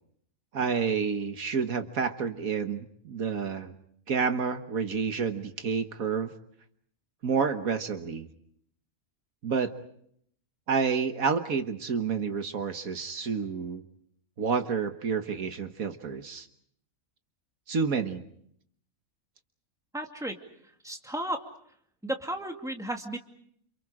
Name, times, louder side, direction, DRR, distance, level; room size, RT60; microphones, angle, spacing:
voice 1, 0.5-3.7 4.1-6.3 7.2-8.3 9.4-9.7 10.7-13.8 14.4-16.5 17.7-18.2, right 6 dB, 70° right, 7 dB, 1.8 m, -29 dB
voice 2, 19.9-20.4 20.8-21.5 22.0-23.2, right 1 dB, ahead, 3 dB, 2.3 m, -33 dB
29.5 x 28.0 x 4.9 m, 0.68 s
omnidirectional pair, 1.5 m